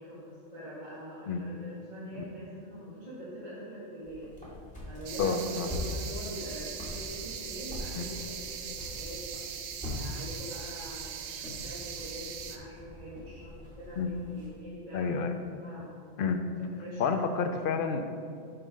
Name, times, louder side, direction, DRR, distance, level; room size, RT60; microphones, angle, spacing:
voice 1, 0.0-4.3 4.9-9.2 9.8-15.1 15.6-15.9 16.6-17.3, equal, 45° right, -10 dB, 2.2 m, -44 dB
sound 1, 4.0-14.5, left 1 dB, 5° left, 1.8 m, -43 dB
sound 2, 5.1-12.6, right 8 dB, 80° right, 0.9 m, -40 dB
voice 2, 5.2-5.7 7.9-8.0 14.0-14.1 14.9-15.3 16.2-16.4 17.0-18.0, left 5 dB, 60° left, 7 dB, 0.7 m, -29 dB
7.9 x 3.9 x 5.3 m, 2.3 s
omnidirectional pair, 1.1 m